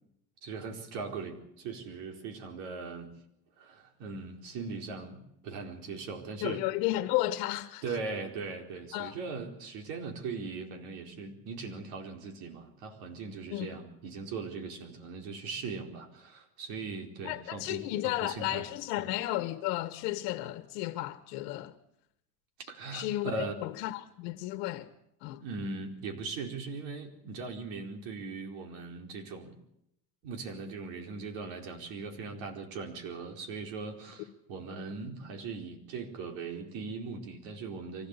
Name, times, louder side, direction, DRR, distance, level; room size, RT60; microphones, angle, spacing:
voice 1, 0.4-3.1 3.6-6.7 7.8-18.6 19.0-19.1 22.7-23.5 25.4-29.5 30.2-38.1, right 4 dB, 65° right, 4.6 m, -39 dB
voice 2, 6.4-7.8 8.9-9.2 13.5-13.7 17.2-21.7 22.9-24.9 25.2-25.4, left 16 dB, 70° left, 1.5 m, -33 dB
24.5 x 17.0 x 8.3 m
cardioid pair, 155°, 47 cm